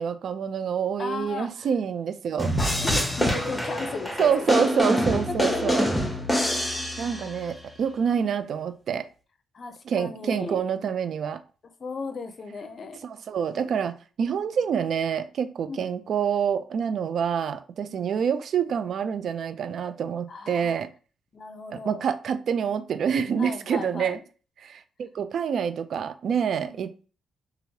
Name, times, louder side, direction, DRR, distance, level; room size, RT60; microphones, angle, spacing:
voice 1, 0.0-2.5 4.2-5.8 7.0-9.1 9.9-11.4 13.0-20.9 21.7-24.2 24.6-27.1, right 7 dB, 60° right, 0.3 m, -27 dB
voice 2, 1.0-1.7 2.8-4.7 5.1-5.7 7.0-7.5 9.5-10.6 11.8-13.0 14.5-14.6 15.6-15.9 17.8-18.2 20.3-20.7 21.3-22.1 23.4-24.2 26.6-26.8, left 4 dB, 45° left, 0.5 m, -36 dB
sound 1, 2.4-7.4, equal, 10° left, 0.9 m, -25 dB
3.0 x 2.4 x 2.8 m
cardioid pair, 90°, 0 cm